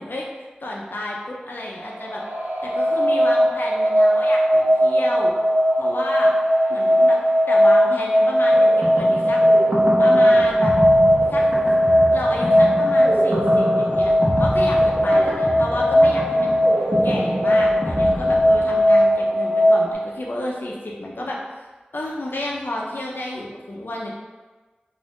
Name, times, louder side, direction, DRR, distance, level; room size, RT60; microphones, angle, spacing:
voice 1, 0.0-2.2 2.6-5.3 5.8-6.3 6.7-7.2 7.5-9.4 10.0-10.7 11.3-11.5 12.1-16.6 17.0-21.7 21.9-24.1, left 1 dB, 75° left, -2 dB, 0.6 m, -31 dB
sound 1, 1.8-19.9, equal, 75° right, 0.4 m, -18 dB
sound 2, 8.5-19.1, right 1 dB, 40° right, 0.8 m, -27 dB
2.6 x 2.4 x 3.5 m, 1.3 s
wide cardioid pair, 40°, 3 cm